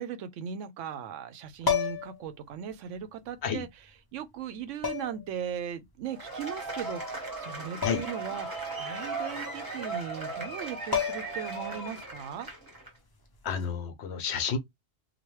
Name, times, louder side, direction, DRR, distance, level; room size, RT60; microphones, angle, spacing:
voice 1, 0.0-3.7 4.1-12.5, right 8 dB, 85° right, 0.9 m, -38 dB
sound 1, 1.6-2.2 3.5-3.6 4.8-5.3 7.8-8.2 8.6-8.7 10.5-10.6 10.9-11.5 13.5-13.7, left 7 dB, 35° left, 0.4 m, -30 dB
Cheering / Applause / Crowd, 6.1-12.9, right 3 dB, 20° right, 1.0 m, -37 dB
voice 2, 13.4-14.6, left 7 dB, 65° left, 0.9 m, -30 dB
2.9 x 2.2 x 3.0 m
omnidirectional pair, 1.2 m